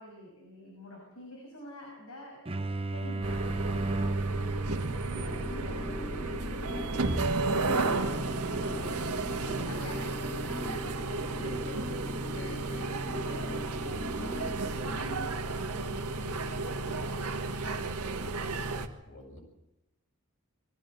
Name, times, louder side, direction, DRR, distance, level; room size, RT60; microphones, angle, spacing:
voice 1, 0.0-2.4 2.8-14.5 14.9-18.4, equal, 80° left, -1 dB, 6.4 m, -47 dB
sound 1, 2.5-8.0, right 2 dB, 25° right, 0.8 m, -35 dB
sound 2, 3.2-18.9, right 3 dB, 90° right, 1.6 m, -33 dB
sound 3, 5.1-15.1, left 1 dB, 10° left, 1.9 m, -41 dB
voice 2, 12.4-12.9 19.0-19.4, left 2 dB, 60° left, 1 dB, 6.6 m, -47 dB
22.0 x 15.0 x 8.1 m, 0.93 s
head